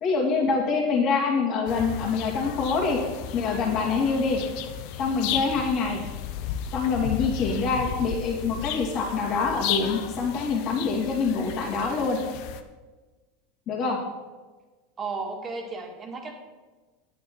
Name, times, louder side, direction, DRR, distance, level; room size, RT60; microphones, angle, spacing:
voice 1, 0.0-3.0 3.3-4.4 5.0-6.0 6.7-12.2 13.7-14.0, left 4 dB, 45° left, 0 dB, 2.4 m, -25 dB
sound 1, 1.7-12.6, left 10 dB, 60° left, 0.8 m, -34 dB
voice 2, 15.0-16.3, right 4 dB, 30° right, 2 dB, 2.0 m, -34 dB
9.2 x 9.0 x 4.6 m, 1.3 s
hypercardioid pair, 100°, 0 cm